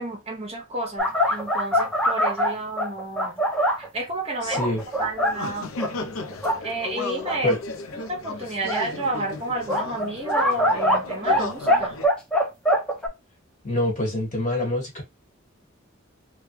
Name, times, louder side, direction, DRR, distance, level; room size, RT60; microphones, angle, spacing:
voice 1, 0.0-3.4 3.8-4.6 5.0-5.7 6.6-7.6 7.9-11.9, right 2 dB, 30° right, 0.8 m, -31 dB
sound 1, 1.0-3.9 4.5-5.3 5.8-5.9 6.3-6.6 7.2-7.3 8.7-8.8 9.7-11.4 11.7-13.1, equal, 5° left, 0.6 m, -22 dB
sound 2, 4.4-12.1, left 3 dB, 85° left, 0.5 m, -35 dB
voice 2, 4.4-4.8 7.4-7.6 13.6-15.0, left 1 dB, 40° left, 1.5 m, -25 dB
3.3 x 2.3 x 3.0 m
head